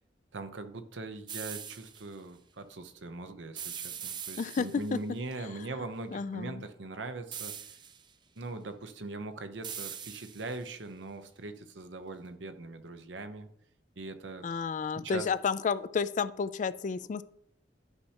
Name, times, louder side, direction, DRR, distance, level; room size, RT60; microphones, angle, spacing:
voice 1, 0.3-7.5 8.4-13.5 14.0-14.5 15.0-15.2, right 3 dB, 85° right, 9 dB, 0.8 m, -41 dB
sound 1, 1.3-2.0 3.5-5.0 7.3-8.1 9.6-10.7, right 8 dB, 25° right, 0.4 m, -41 dB
voice 2, 4.4-5.0 5.4-5.7 6.1-6.6 14.4-17.2, left 5 dB, 45° left, 16 dB, 0.3 m, -31 dB
11.5 x 5.6 x 2.9 m, 0.71 s
head